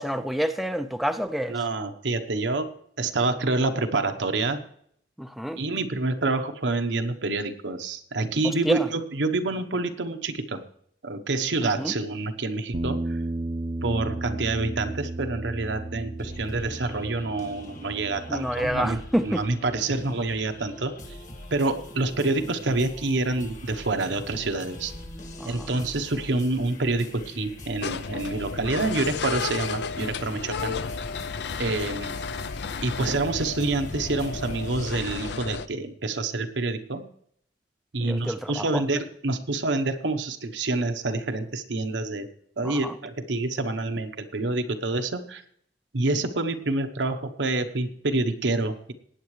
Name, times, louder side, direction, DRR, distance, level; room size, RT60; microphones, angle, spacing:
voice 1, 0.0-1.6 5.2-5.6 8.6-8.9 11.6-12.0 18.3-19.4 25.4-25.7 38.0-38.8 42.6-42.9, equal, ahead, 0.4 m, -28 dB
voice 2, 1.5-2.7 3.0-4.6 5.5-10.6 11.0-13.2 13.8-21.2 21.5-24.9 25.5-30.8 31.6-32.1 32.8-37.1 37.9-42.3 42.6-45.4 45.9-48.9, right 2 dB, 85° right, 1.0 m, -27 dB
Bass guitar, 12.7-19.0, right 2 dB, 40° right, 0.6 m, -34 dB
sound 1, 16.2-35.4, left 1 dB, 45° left, 1.7 m, -43 dB
sound 2, 27.8-35.7, left 5 dB, 65° left, 0.5 m, -33 dB
19.5 x 8.9 x 3.2 m
head